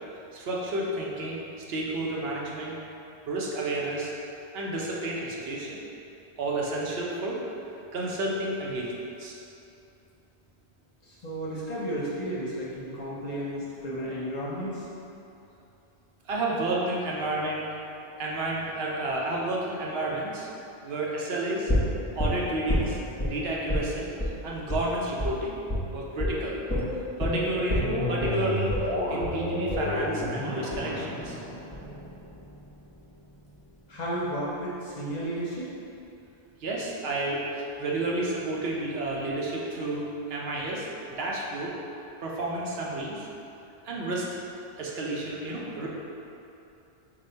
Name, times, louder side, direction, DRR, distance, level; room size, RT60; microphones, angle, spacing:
voice 1, 0.3-1.4 1.7-2.8 3.3-4.1 4.5-5.8 6.4-7.4 7.9-8.9 9.2-9.3 16.3-17.7 18.2-20.5 20.8-21.7 22.1-23.0 23.2-24.1 24.4-25.6 25.9-28.7 29.1-31.4 36.6-40.0 40.3-41.7 42.2-43.3 43.8-44.3 44.8-45.9, right 2 dB, 70° right, -4 dB, 0.8 m, -31 dB
voice 2, 11.0-14.8 33.9-35.7, equal, 45° left, -7 dB, 0.6 m, -33 dB
sound 1, 21.7-23.3 23.7-23.9 24.2-24.3 24.7-24.8 25.2-25.3 25.7-25.9 26.2-26.3 26.7-32.7 33.0-33.1, left 1 dB, 10° left, 0.8 m, -29 dB
3.8 x 2.1 x 4.3 m, 2.8 s
omnidirectional pair, 1.1 m